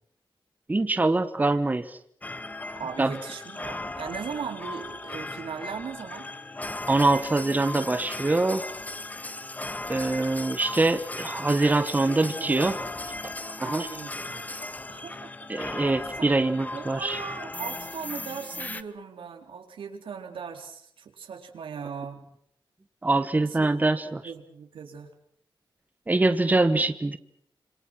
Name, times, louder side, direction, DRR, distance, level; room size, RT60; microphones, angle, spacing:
voice 1, 0.7-2.0 3.0-3.1 6.9-8.6 9.9-12.8 13.2-13.3 13.6-13.9 15.5-17.2 23.0-24.2 26.1-27.2, right 2 dB, 20° right, 10 dB, 1.3 m, -24 dB
sound 1, 2.2-18.8, left 2 dB, 20° left, 1.0 m, -37 dB
voice 2, 2.8-6.3 12.1-13.0 13.6-14.5 14.9-15.5 16.2-16.3 16.7-22.2 23.4-23.7 24.2-25.1, right 6 dB, 85° right, 4 dB, 4.1 m, -39 dB
27.0 x 27.0 x 6.3 m, 0.66 s
wide cardioid pair, 125°, 9 cm